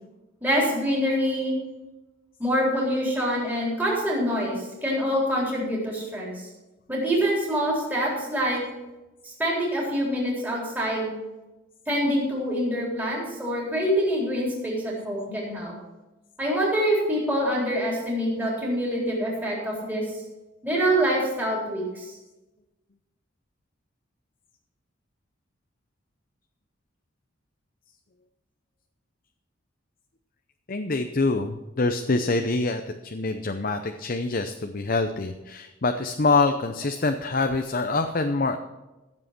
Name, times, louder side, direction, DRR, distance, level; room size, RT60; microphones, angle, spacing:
voice 1, 0.4-1.6 2.4-6.5 6.9-8.6 9.2-11.1 11.9-15.7 16.4-20.0 20.6-22.1, equal, 10° right, -4 dB, 4.0 m, -25 dB
voice 2, 30.7-38.6, left 3 dB, 45° left, 6 dB, 0.7 m, -25 dB
15.0 x 7.6 x 6.0 m, 1.1 s
head